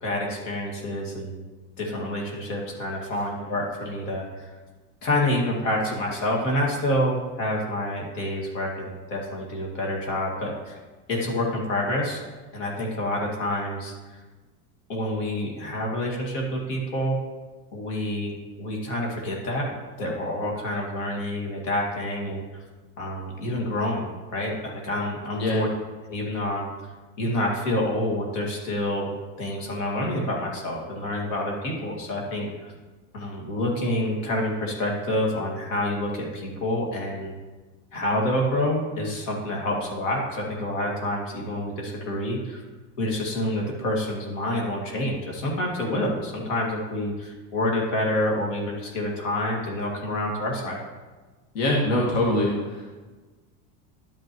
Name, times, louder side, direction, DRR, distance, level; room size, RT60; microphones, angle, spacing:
voice 1, 0.0-1.4 1.8-4.5 5.0-10.8 11.1-12.2 12.5-13.9 14.9-17.2 17.7-19.7 20.0-22.6 23.0-25.7 26.0-26.7 27.2-29.1 29.4-32.7 33.1-37.3 37.9-42.6 43.0-50.8, left 1 dB, 90° left, -2 dB, 2.2 m, -28 dB
voice 2, 51.5-52.8, left 1 dB, 70° left, -3 dB, 1.8 m, -23 dB
12.0 x 5.8 x 3.1 m, 1.3 s
supercardioid pair, 130°, 36 cm